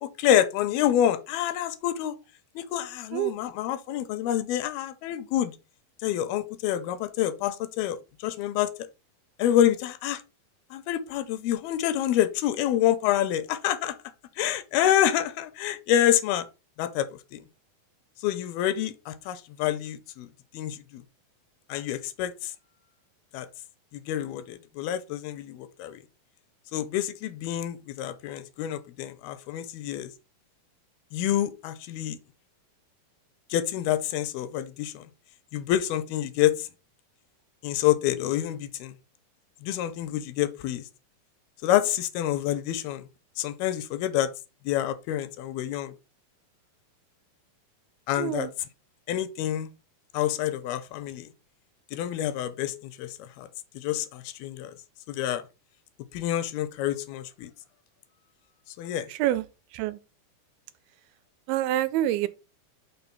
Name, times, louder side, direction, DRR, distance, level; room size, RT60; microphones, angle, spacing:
voice 1, 0.0-2.2 2.6-5.5 6.0-8.7 9.4-10.2 10.7-14.0 14.4-16.5 16.8-17.4 18.2-20.3 20.5-21.0 21.7-22.5 23.3-23.5 23.9-26.0 26.7-30.1 31.1-32.2 33.5-35.0 35.5-36.7 37.6-38.9 39.6-40.9 41.6-43.0 43.4-44.3 44.7-45.9 48.1-48.5 49.1-49.7 50.1-51.3 51.9-53.5 53.8-54.7 55.1-55.4 56.1-57.5 58.8-59.1, left 11 dB, 85° left, 2.5 m, -27 dB
voice 2, 48.2-48.5 59.1-59.5 59.7-60.0 61.5-62.3, right 13 dB, 85° right, 2.4 m, -26 dB
6.0 x 3.7 x 5.6 m
omnidirectional pair, 4.3 m